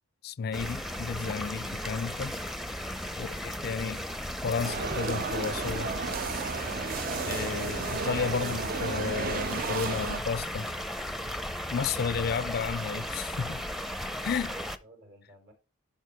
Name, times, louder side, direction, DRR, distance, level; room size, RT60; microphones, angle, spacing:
voice 1, 0.2-2.4 2.8-2.9 3.2-4.1 4.4-5.9 7.1-10.7 11.7-13.6 14.2-14.5, left 6 dB, 50° left, 0.4 m, -32 dB
sound 1, 0.5-14.8, equal, ahead, 0.6 m, -36 dB
sound 2, 4.6-10.2, right 5 dB, 50° right, 0.5 m, -33 dB
voice 2, 14.2-15.5, right 1 dB, 65° right, 4.6 m, -56 dB
11.5 x 5.0 x 4.8 m
head